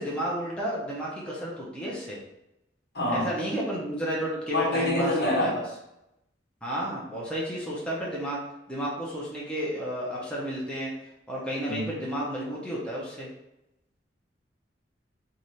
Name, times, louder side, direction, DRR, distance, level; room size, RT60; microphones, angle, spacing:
voice 1, 0.0-2.2 3.1-5.6 6.6-8.4 8.7-10.9 11.3-13.3, equal, 5° left, -6 dB, 0.7 m, -32 dB
voice 2, 2.9-3.3 4.5-5.5 11.7-11.9, left 1 dB, 60° left, -4 dB, 1.4 m, -26 dB
3.2 x 2.6 x 4.1 m, 0.87 s
head